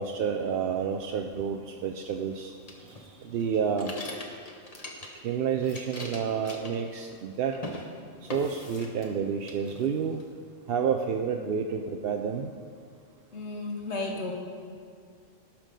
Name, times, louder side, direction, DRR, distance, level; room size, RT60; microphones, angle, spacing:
voice 1, 0.0-2.5 3.2-4.0 5.2-7.6 8.3-10.2 10.7-12.5, right 7 dB, 60° right, 4 dB, 0.7 m, -29 dB
sound 1, 2.7-5.3 5.6-7.3 7.5-7.9 8.3-9.2 9.5-10.2, left 2 dB, 30° left, 1.2 m, -41 dB
voice 2, 13.3-14.3, left 2 dB, 60° left, 0 dB, 1.9 m, -33 dB
17.5 x 6.0 x 5.2 m, 2.2 s
omnidirectional pair, 1.3 m